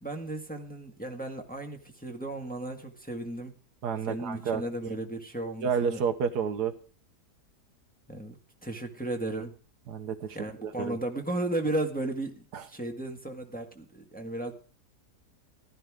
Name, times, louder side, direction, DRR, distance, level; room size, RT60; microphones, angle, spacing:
voice 1, 0.0-3.5 4.1-6.0 8.1-8.4 8.6-9.6 10.3-14.5, right 1 dB, 5° left, 3 dB, 1.5 m, -35 dB
voice 2, 3.8-5.0 5.6-6.7 9.9-10.4 10.6-11.0 12.5-12.6, right 6 dB, 75° right, 9 dB, 1.5 m, -30 dB
15.0 x 13.0 x 3.7 m, 0.41 s
omnidirectional pair, 1.8 m